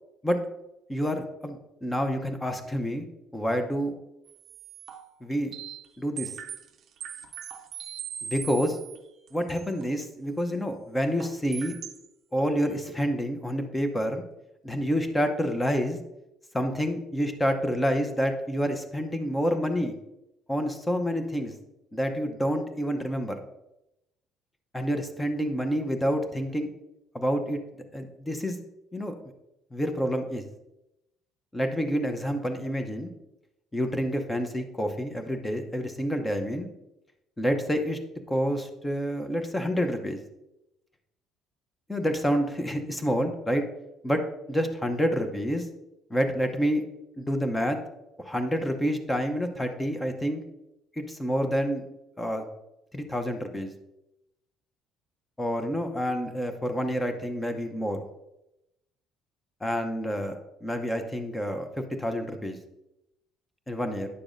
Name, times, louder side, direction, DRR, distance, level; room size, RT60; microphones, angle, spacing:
voice 1, 0.9-3.0 3.3-3.9 5.2-5.5 6.0-6.3 8.2-8.8 9.3-11.7 12.3-14.2 14.6-16.0 16.5-19.9 20.5-21.5 21.9-23.4 24.7-26.7 27.1-27.6 27.9-28.6 28.9-29.1 29.7-30.4 31.5-33.1 33.7-36.7 37.4-38.0 38.3-40.2 41.9-43.6 44.0-44.2 44.5-45.6 46.1-46.8 47.2-47.8 48.2-50.4 51.0-51.8 52.2-52.4 52.9-53.7 55.4-58.0 59.6-62.6 63.7-64.1, equal, 10° left, 6 dB, 0.8 m, -28 dB
sound 1, 4.3-5.9 6.2-9.0 9.3-9.9 11.2-12.1 12.4-12.5, right 8 dB, 50° right, 0.6 m, -40 dB
9.9 x 6.8 x 2.6 m, 0.88 s
cardioid pair, 150°, 0 cm